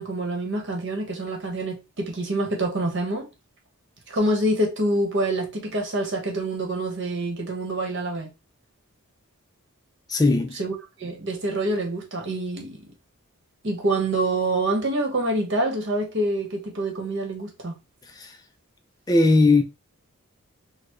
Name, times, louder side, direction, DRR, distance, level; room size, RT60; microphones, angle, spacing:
voice 1, 0.0-3.3 4.1-8.3 10.5-12.8 13.6-17.8, right 1 dB, 55° right, 1.1 m, -26 dB
voice 2, 10.1-10.6 18.2-18.3 19.1-19.6, left 3 dB, 15° left, 0.3 m, -18 dB
4.0 x 2.2 x 3.0 m
head